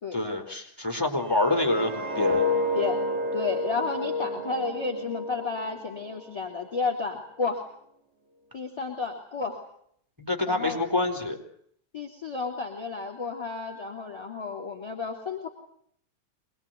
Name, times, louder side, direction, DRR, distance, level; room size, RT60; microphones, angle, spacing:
voice 1, 0.1-2.4 10.2-11.4, left 2 dB, 5° right, 4 dB, 4.4 m, -27 dB
sound 1, 1.2-6.3 6.6-6.9, left 2 dB, 50° right, 3.1 m, -30 dB
voice 2, 3.3-7.6 8.5-9.6 10.5-10.8 11.9-15.5, left 4 dB, 10° left, 1 dB, 3.0 m, -32 dB
26.0 x 20.5 x 9.4 m, 0.69 s
omnidirectional pair, 3.8 m